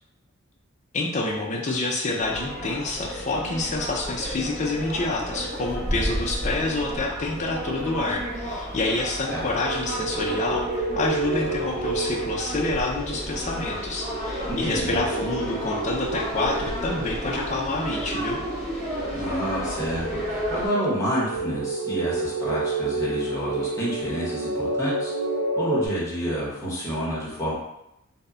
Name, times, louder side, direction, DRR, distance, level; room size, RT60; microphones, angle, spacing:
voice 1, 0.9-18.4, left 2 dB, 35° left, -1 dB, 0.4 m, -28 dB
sound 1, 2.2-20.7, equal, 40° right, 0.7 m, -32 dB
sound 2, 9.3-25.9, right 3 dB, 85° right, 0.5 m, -31 dB
voice 2, 14.6-15.0 19.1-25.1 25.6-27.5, equal, 15° left, -7 dB, 0.7 m, -29 dB
2.1 x 2.0 x 3.5 m, 0.87 s
head